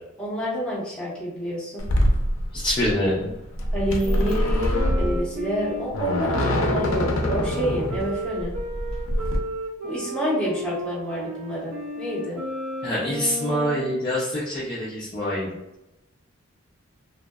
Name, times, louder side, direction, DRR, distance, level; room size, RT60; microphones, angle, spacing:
voice 1, 0.2-1.8 3.7-8.5 9.8-12.4, equal, 5° left, -7 dB, 0.8 m, -28 dB
sound 1, 1.8-9.4, equal, 80° left, 0.4 m, -24 dB
voice 2, 2.5-3.3 12.8-15.5, equal, 25° left, -8 dB, 0.4 m, -25 dB
Wind instrument woodwind instrument, 4.0-14.1, equal, 60° right, 0.4 m, -34 dB
2.6 x 2.1 x 2.2 m, 0.91 s
head